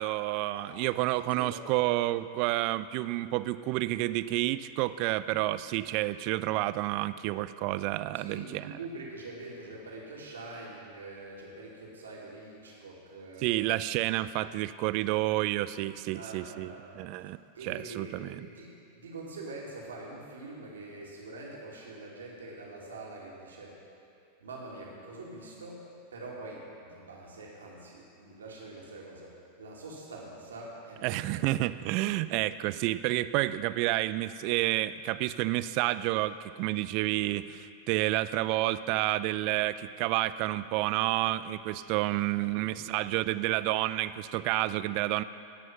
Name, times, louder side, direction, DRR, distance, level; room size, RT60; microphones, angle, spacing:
voice 1, 0.0-8.8 13.4-18.5 31.0-45.2, right 16 dB, 45° right, 15 dB, 0.4 m, -30 dB
voice 2, 1.2-1.6 8.2-13.6 16.1-17.0 17.5-18.7 19.0-23.8 24.4-25.8 26.1-31.4 42.5-42.8, right 2 dB, 70° right, -3 dB, 2.2 m, -44 dB
18.5 x 6.2 x 5.9 m, 2.6 s
figure-of-eight pair, 90°, 0 cm